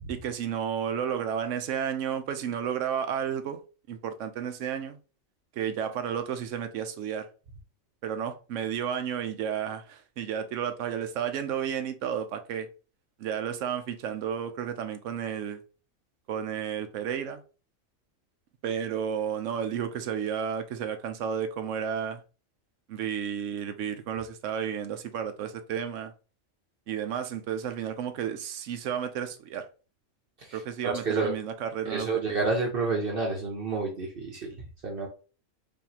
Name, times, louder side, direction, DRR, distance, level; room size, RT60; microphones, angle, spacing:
voice 1, 0.1-3.6 3.9-5.0 5.5-7.3 8.0-12.7 13.2-15.6 16.3-17.4 18.6-22.2 22.9-26.1 26.9-29.7 30.5-32.4, right 8 dB, 75° right, 0.9 m, -32 dB
voice 2, 30.8-31.3 31.9-35.1, right 3 dB, 50° right, 0.9 m, -29 dB
5.2 x 2.6 x 2.8 m
omnidirectional pair, 1.4 m